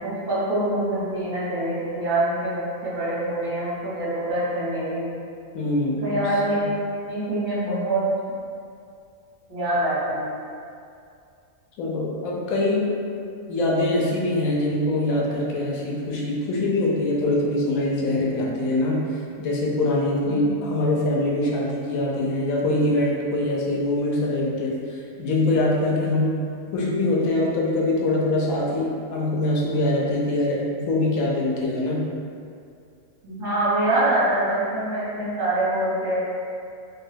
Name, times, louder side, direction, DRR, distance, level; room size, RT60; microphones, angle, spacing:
voice 1, 0.0-5.1 6.0-6.7 7.1-8.1 9.5-10.3 20.2-20.6 26.0-26.1 33.2-36.2, right 1 dB, 40° right, -11 dB, 1.1 m, -25 dB
voice 2, 5.5-6.6 11.8-12.9 13.5-26.4 26.7-32.0, left 2 dB, 90° left, -4 dB, 1.0 m, -23 dB
2.6 x 2.2 x 3.2 m, 2.4 s
omnidirectional pair, 1.4 m